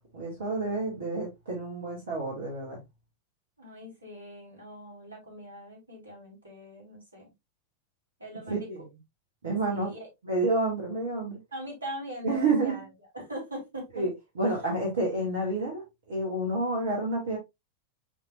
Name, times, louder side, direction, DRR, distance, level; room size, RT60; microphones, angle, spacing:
voice 1, 0.1-2.8 8.5-8.8 9.4-9.9 10.2-11.4 12.2-12.8 13.9-15.8 16.1-17.4, right 2 dB, 60° right, 2.7 m, -29 dB
voice 2, 3.6-7.3 8.2-8.7 9.4-10.1 11.5-12.8 13.1-14.1 14.4-14.8, right 1 dB, 80° right, 4.3 m, -41 dB
10.0 x 3.9 x 2.6 m
figure-of-eight pair, 90°, 0 cm